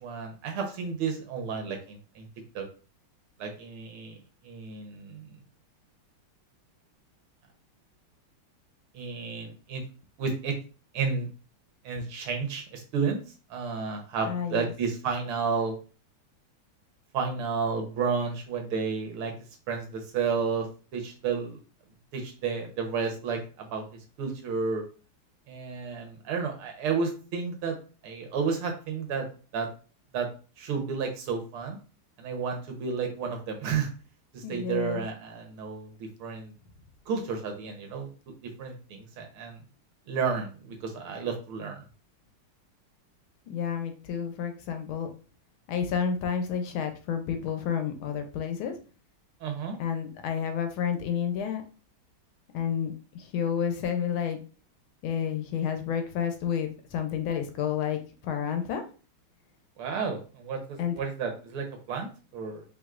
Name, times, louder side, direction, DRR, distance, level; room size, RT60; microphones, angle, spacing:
voice 1, 0.0-2.3 2.6-2.7 3.4-5.3 8.9-9.8 10.2-10.6 10.9-11.3 11.8-13.2 13.5-15.8 17.1-19.3 19.7-20.7 20.9-21.6 22.1-24.9 25.5-27.8 28.0-29.7 30.1-30.3 30.6-31.8 32.2-33.9 34.3-35.9 36.2-36.5 37.1-38.1 38.4-39.6 40.1-41.8 49.4-49.8 59.8-62.6, right 5 dB, 80° right, 3 dB, 1.8 m, -32 dB
voice 2, 14.2-14.7 34.4-35.0 43.5-45.1 45.7-48.8 49.8-51.6 52.5-54.4 55.0-58.8 60.8-61.0, left 8 dB, 75° left, 6 dB, 1.4 m, -30 dB
5.2 x 3.2 x 2.4 m, 0.36 s
omnidirectional pair, 2.4 m